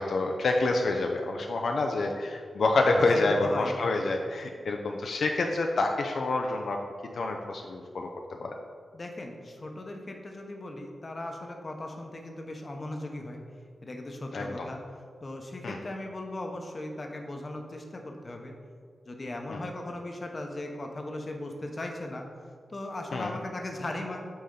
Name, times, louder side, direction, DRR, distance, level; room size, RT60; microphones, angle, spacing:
voice 1, 0.0-6.8 7.1-8.5 14.3-14.7 15.6-15.8 19.5-19.6 23.1-23.3, left 2 dB, 70° left, 2 dB, 0.5 m, -27 dB
voice 2, 3.2-3.7 8.9-13.4 13.8-14.8 15.2-18.5 19.0-22.2 22.7-24.3, left 1 dB, 35° left, 2 dB, 0.8 m, -38 dB
8.6 x 4.1 x 3.8 m, 2.1 s
wide cardioid pair, 115°, 0 cm